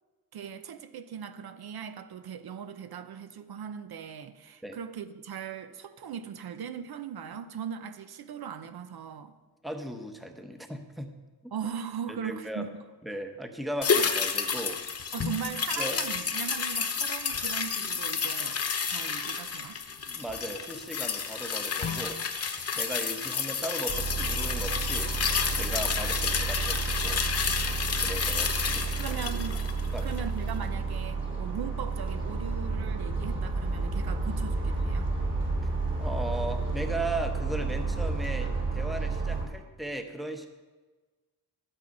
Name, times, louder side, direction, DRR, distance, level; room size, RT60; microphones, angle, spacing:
voice 1, 0.3-9.4 11.5-12.7 15.1-18.6 18.9-19.8 29.0-29.6 30.0-35.1, right 7 dB, 65° right, 0.8 m, -39 dB
voice 2, 9.6-11.1 11.4-11.5 12.1-12.6 13.0-14.8 15.8-16.0 20.1-22.2 22.7-25.1 25.6-27.2 28.0-29.0 29.9-30.2 36.0-40.5, right 1 dB, ahead, 0.9 m, -37 dB
sound 1, 13.8-30.3 30.6-30.7, left 6 dB, 35° left, 1.0 m, -30 dB
sound 2, 23.9-39.5, right 3 dB, 30° right, 2.5 m, -31 dB
12.5 x 9.1 x 5.4 m
wide cardioid pair, 140°, 40 cm